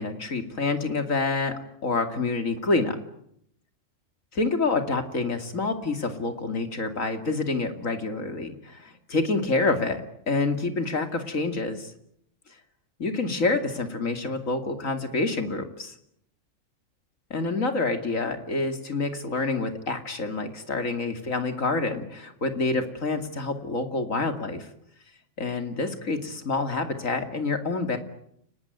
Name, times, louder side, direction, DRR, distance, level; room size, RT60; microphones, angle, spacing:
voice 1, 0.0-3.0 4.3-11.9 13.0-16.0 17.3-24.7 25.4-28.0, left 3 dB, 80° left, 7 dB, 3.0 m, -27 dB
30.0 x 19.0 x 9.4 m, 0.72 s
omnidirectional pair, 1.4 m